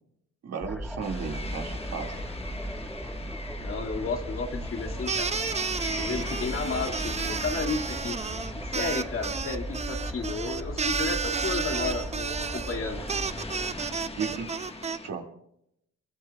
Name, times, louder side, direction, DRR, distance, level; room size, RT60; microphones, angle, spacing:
voice 1, 0.4-2.2 14.2-14.5 15.0-15.2, right 6 dB, 60° right, 2 dB, 2.2 m, -34 dB
sound 1, 0.6-14.9, equal, ahead, 1.5 m, -37 dB
sound 2, 1.0-15.1, left 2 dB, 20° left, 1.4 m, -41 dB
voice 2, 3.6-5.3 6.0-8.2 8.5-13.0, left 4 dB, 45° left, 3 dB, 2.2 m, -33 dB
sound 3, 5.1-15.0, right 5 dB, 20° right, 0.5 m, -32 dB
22.5 x 22.0 x 2.3 m, 0.76 s
cardioid pair, 90°, 30 cm